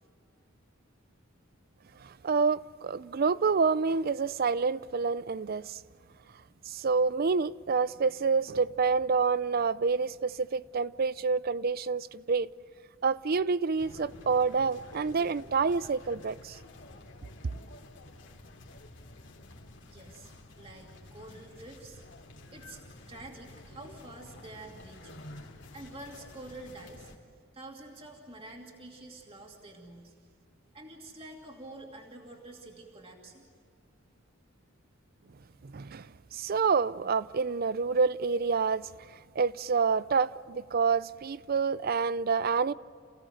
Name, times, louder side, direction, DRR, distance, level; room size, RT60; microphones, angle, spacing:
voice 1, 2.0-5.8 6.7-12.5 13.0-16.6 35.6-36.1 36.3-38.9 39.4-42.7, right 5 dB, 50° right, 0.5 m, -28 dB
sound 1, 13.8-27.2, left 2 dB, 65° left, 2.7 m, -50 dB
voice 2, 19.9-20.3 20.6-22.0 22.5-22.8 23.1-25.2 25.7-27.1 27.5-30.1 30.7-33.4, right 2 dB, 30° right, 2.7 m, -47 dB
28.5 x 17.0 x 7.8 m
head